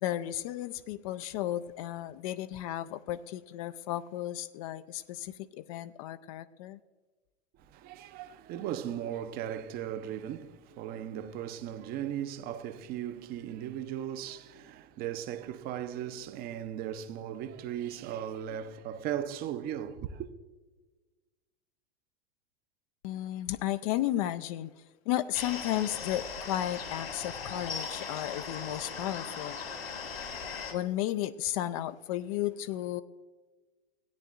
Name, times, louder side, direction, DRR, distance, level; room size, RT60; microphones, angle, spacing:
voice 1, 0.0-6.8 23.0-24.7 25.1-29.6 30.7-33.0, left 13 dB, 35° left, 0.4 m, -34 dB
voice 2, 7.7-20.3, right 10 dB, 30° right, 0.7 m, -37 dB
sound 1, 25.3-30.7, left 5 dB, 70° left, 2.0 m, -39 dB
17.0 x 9.8 x 2.5 m
figure-of-eight pair, 90°, 30 cm